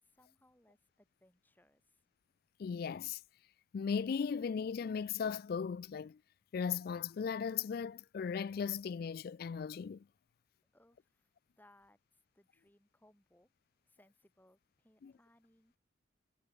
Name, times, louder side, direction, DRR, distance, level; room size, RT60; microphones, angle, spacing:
voice 1, 0.0-2.0 10.7-11.3 11.6-13.5 13.8-15.8, left 1 dB, 10° left, 6.1 m, -68 dB
voice 2, 2.6-3.2 3.7-6.2 6.5-10.0 15.0-15.1, left 6 dB, 50° left, 0.3 m, -37 dB
head